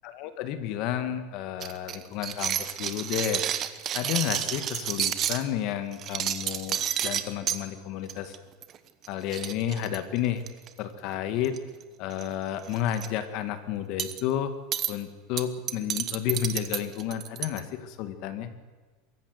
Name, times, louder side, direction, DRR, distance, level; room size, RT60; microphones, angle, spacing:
voice 1, 0.0-3.4 3.9-8.4 9.1-10.4 10.8-11.6 12.0-14.5 14.9-18.5, left 10 dB, 50° left, 10 dB, 1.9 m, -31 dB
sound 1, 1.6-5.4 5.9-7.6 8.1-8.4 8.6-8.8 9.0-9.1 9.3-10.7 11.4-11.8 12.1-12.3 12.6-13.1 14.0-14.2 14.7-14.9 15.4-17.6, right 10 dB, 30° right, 1.1 m, -30 dB
23.5 x 14.0 x 8.1 m, 1.3 s
supercardioid pair, 160°, 0 cm